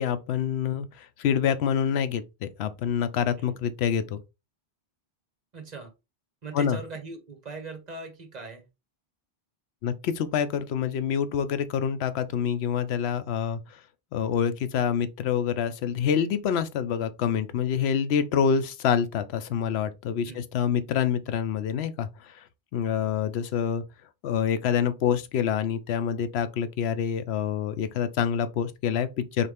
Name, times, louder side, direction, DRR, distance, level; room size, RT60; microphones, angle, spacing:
voice 1, 0.0-4.2 6.5-6.8 9.8-13.8 14.1-22.4 22.7-23.8 24.2-29.5, left 8 dB, 90° left, 0.8 m, -27 dB
voice 2, 5.5-5.9 6.4-8.6 20.3-20.4, right 3 dB, 45° right, 1.1 m, -40 dB
4.1 x 3.3 x 3.3 m
omnidirectional pair, 1.0 m